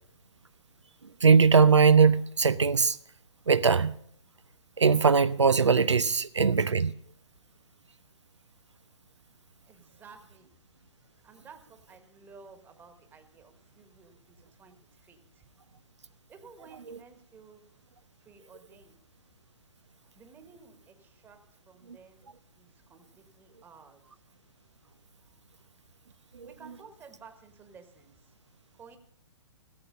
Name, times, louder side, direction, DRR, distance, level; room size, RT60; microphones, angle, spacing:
voice 1, 1.2-3.0 3.5-3.9 4.8-6.9 16.9-17.0 26.4-26.5, right 5 dB, 80° right, 0.5 m, -21 dB
voice 2, 9.7-10.5 11.2-14.2 14.6-14.8 15.1-15.4 16.3-17.6 18.2-19.0 20.1-21.4 21.7-22.3 22.6-24.0 26.4-28.1 28.8-29.0, right 5 dB, 15° right, 1.4 m, -53 dB
16.5 x 7.8 x 5.2 m
figure-of-eight pair, 125°, 15 cm